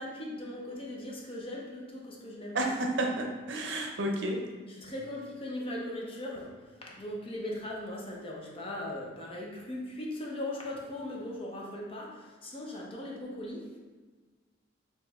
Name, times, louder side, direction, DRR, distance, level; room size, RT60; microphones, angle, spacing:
voice 1, 0.0-2.9 4.7-13.8, left 1 dB, 30° left, -2 dB, 0.6 m, -39 dB
voice 2, 3.0-4.4, right 1 dB, 70° right, 1 dB, 0.6 m, -31 dB
4.9 x 2.9 x 2.4 m, 1.4 s
head